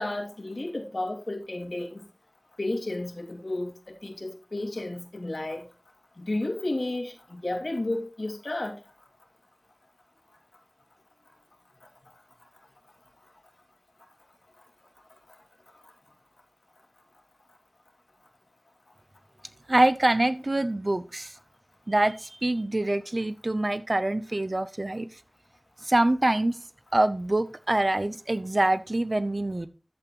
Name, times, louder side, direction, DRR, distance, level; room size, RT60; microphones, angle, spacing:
voice 1, 0.0-2.0 2.6-5.6 6.2-8.7, left 2 dB, 70° left, 2 dB, 2.6 m, -32 dB
voice 2, 19.7-21.3 21.9-25.1 25.8-26.6 26.9-29.7, right 1 dB, 50° right, 12 dB, 0.8 m, -25 dB
11.0 x 8.1 x 3.1 m, 0.31 s
wide cardioid pair, 50°, 0 cm